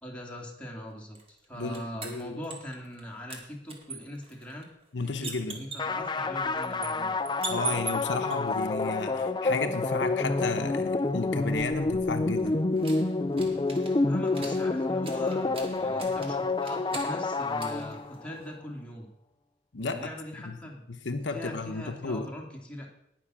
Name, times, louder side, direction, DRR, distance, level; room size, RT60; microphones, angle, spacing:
voice 1, 0.0-4.7 5.0-7.2 14.1-19.1 19.9-20.8 21.1-22.9, equal, 5° left, -2 dB, 2.6 m, -41 dB
sound 1, 1.2-3.0 3.3-8.4 11.1-18.6, right 4 dB, 30° right, 2.1 m, -42 dB
voice 2, 1.6-2.4 4.9-5.7 7.5-12.6 19.7-20.1 20.4-20.6 20.9-22.3, left 3 dB, 70° left, 7 dB, 0.9 m, -33 dB
sound 2, 5.8-18.3, left 3 dB, 25° left, 0.5 m, -28 dB
18.5 x 6.3 x 6.2 m, 0.79 s
head